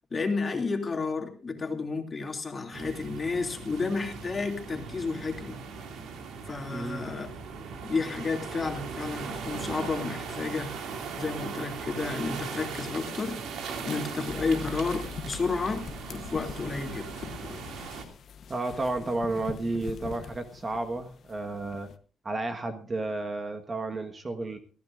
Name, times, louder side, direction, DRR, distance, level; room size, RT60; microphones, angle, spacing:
voice 1, 0.1-5.6 6.5-7.3 7.8-10.7 11.2-13.4 13.8-17.2, left 4 dB, 35° left, 4 dB, 2.6 m, -31 dB
sound 1, 2.7-18.0, right 5 dB, 80° right, 2.4 m, -39 dB
voice 2, 6.7-7.1 18.5-21.9 22.2-24.6, right 2 dB, 30° right, 6 dB, 1.4 m, -32 dB
sound 2, 14.3-22.0, left 7 dB, 60° left, 1.0 m, -43 dB
20.5 x 14.5 x 2.5 m, 0.39 s
cardioid pair, 90°, 0 cm